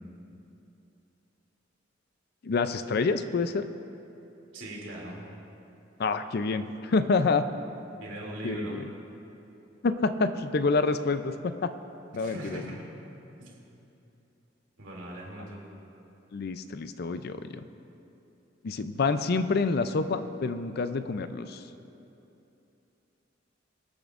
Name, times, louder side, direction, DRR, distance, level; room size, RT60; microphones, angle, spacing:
voice 1, 2.4-3.6 6.0-7.5 8.4-8.8 9.8-11.7 12.1-12.7 16.3-17.6 18.6-21.6, left 4 dB, 55° left, 11 dB, 0.5 m, -27 dB
voice 2, 4.5-5.3 7.9-8.8 12.1-12.8 13.4-13.7 14.8-15.6, right 1 dB, 85° right, -4 dB, 2.7 m, -40 dB
23.5 x 8.7 x 2.5 m, 2.9 s
head